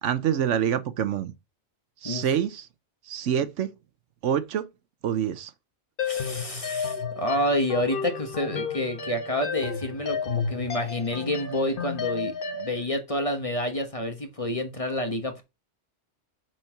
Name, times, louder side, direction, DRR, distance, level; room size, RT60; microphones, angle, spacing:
voice 1, 0.0-1.3 2.0-2.7 3.1-3.7 4.2-4.7 5.0-5.5, right 9 dB, 75° right, 1.0 m, -26 dB
sound 1, 6.0-12.8, left 5 dB, 50° left, 1.1 m, -32 dB
voice 2, 6.0-15.4, left 1 dB, 30° left, 1.2 m, -29 dB
6.1 x 4.4 x 5.8 m
omnidirectional pair, 1.3 m